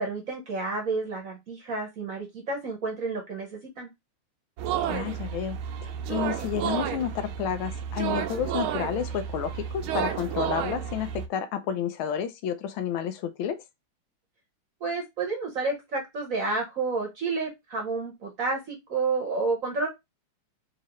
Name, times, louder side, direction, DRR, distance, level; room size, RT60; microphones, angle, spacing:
voice 1, 0.0-3.9 14.8-19.9, right 3 dB, 50° right, 1.1 m, -30 dB
sound 1, 4.6-11.3, right 9 dB, 85° right, 1.5 m, -31 dB
voice 2, 4.8-5.6 6.1-13.6, left 9 dB, 80° left, 1.4 m, -30 dB
4.3 x 2.8 x 2.9 m
omnidirectional pair, 2.3 m